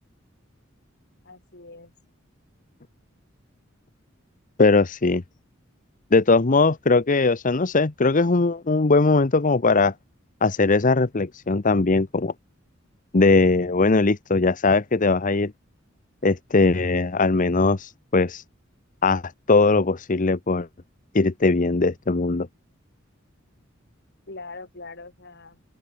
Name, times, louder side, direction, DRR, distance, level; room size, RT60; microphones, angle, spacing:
voice 1, 1.2-1.9 24.3-25.6, left 3 dB, 55° left, 6.6 m, -42 dB
voice 2, 4.6-5.2 6.1-9.9 10.4-12.3 13.1-15.5 16.2-18.4 19.0-20.7 21.1-22.5, left 3 dB, 40° left, 0.8 m, -20 dB
open air
head